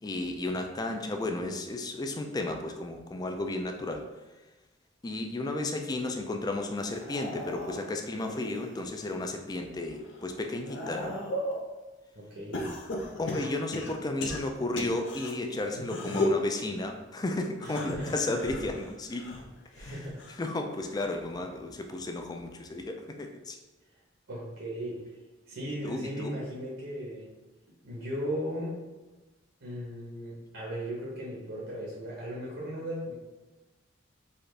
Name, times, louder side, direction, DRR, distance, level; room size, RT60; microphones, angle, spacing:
voice 1, 0.0-4.1 5.0-11.2 13.2-19.3 19.8-19.9 20.4-23.6 25.8-26.4, left 2 dB, 20° left, 4 dB, 0.3 m, -33 dB
sound 1, 6.9-9.2 9.7-11.7 12.5-15.3 15.8-16.5 17.6-20.5 20.9-21.3 22.5-22.6, left 1 dB, 70° left, 0.6 m, -36 dB
voice 2, 12.1-12.6 17.6-18.1 19.7-20.2 24.3-25.0 25.5-27.3 27.8-28.8 29.6-33.1, equal, 80° right, -6 dB, 1.1 m, -37 dB
4.1 x 2.4 x 3.2 m, 1.1 s
head